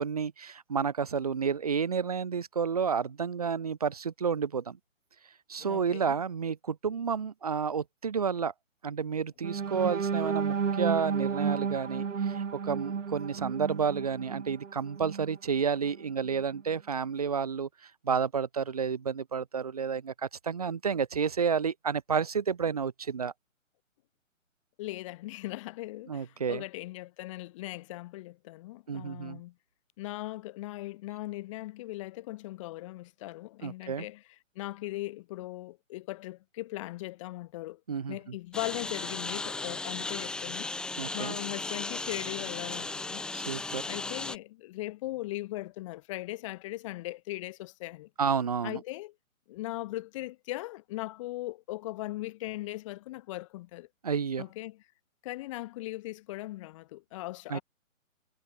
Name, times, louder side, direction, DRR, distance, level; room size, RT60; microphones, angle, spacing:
voice 1, 0.0-4.8 5.5-8.5 8.8-23.3 26.1-26.6 28.9-29.4 33.6-34.1 37.9-38.3 41.0-41.4 43.3-43.8 48.2-48.8 54.0-54.4 57.5-57.6, right 6 dB, 30° right, 0.6 m, -31 dB
voice 2, 5.6-6.2 24.8-29.5 30.0-34.2 34.5-37.8 38.1-40.7 41.1-43.2 43.9-48.1 48.6-49.1 49.5-53.9 54.4-54.8 55.2-57.6, left 18 dB, 25° left, 3.2 m, -39 dB
sound 1, 9.4-15.4 15.8-16.0 16.4-16.6, right 6 dB, 60° right, 7.4 m, -32 dB
Engine, 38.5-44.4, left 3 dB, ahead, 1.5 m, -36 dB
hypercardioid pair, 165°, 41 cm